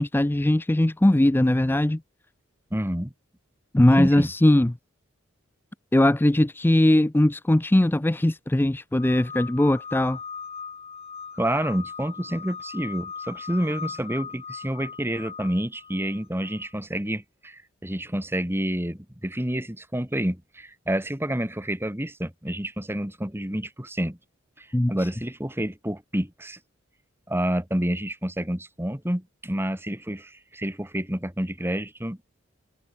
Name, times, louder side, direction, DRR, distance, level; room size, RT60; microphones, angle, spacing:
voice 1, 0.0-2.0 3.7-4.8 5.9-10.2 24.7-25.1, left 1 dB, 10° left, 0.4 m, -20 dB
voice 2, 2.7-3.1 4.0-4.3 11.4-24.2 24.6-26.6 27.3-32.2, right 1 dB, 10° right, 2.4 m, -29 dB
sound 1, 8.9-16.7, left 6 dB, 30° left, 2.5 m, -39 dB
head